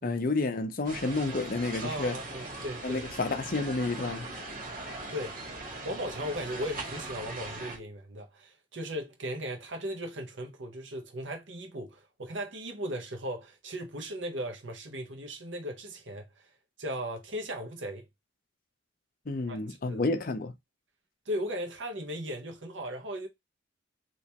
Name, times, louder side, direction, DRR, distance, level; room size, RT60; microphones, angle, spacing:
voice 1, 0.0-2.2 2.8-4.3 19.3-20.5, left 3 dB, 45° left, 0.5 m, -30 dB
sound 1, 0.8-7.8, right 2 dB, 45° right, 1.2 m, -40 dB
voice 2, 1.8-3.3 5.1-5.6 5.8-16.3 16.8-18.1 19.5-19.6 19.8-20.0 21.3-23.3, equal, 70° right, 1.1 m, -37 dB
3.4 x 2.9 x 2.8 m
head